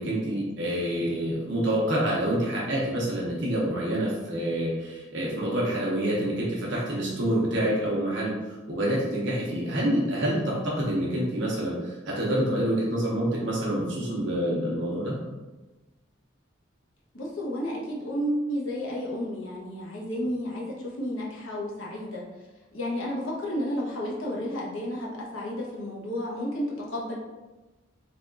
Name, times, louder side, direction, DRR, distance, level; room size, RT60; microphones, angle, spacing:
voice 1, 0.0-15.2, right 1 dB, 60° right, -5 dB, 0.8 m, -27 dB
voice 2, 17.1-22.2 22.7-27.2, equal, 75° left, -4 dB, 0.9 m, -32 dB
3.5 x 2.3 x 3.7 m, 1.1 s
head